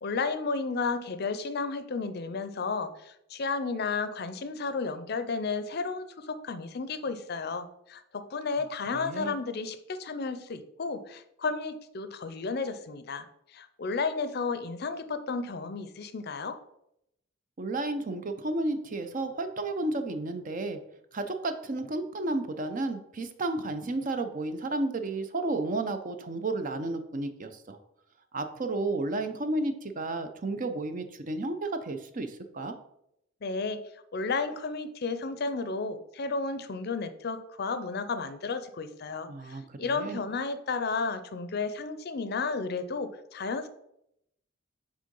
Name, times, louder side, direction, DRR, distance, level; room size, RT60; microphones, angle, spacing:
voice 1, 0.0-13.3 13.5-16.6 33.4-33.8 34.1-43.7, left 4 dB, 55° left, 10 dB, 0.5 m, -33 dB
voice 2, 8.9-9.3 17.6-20.8 21.1-27.8 28.3-32.7 39.3-40.2, right 2 dB, 40° right, 8 dB, 0.6 m, -32 dB
6.6 x 3.7 x 5.3 m, 0.79 s
head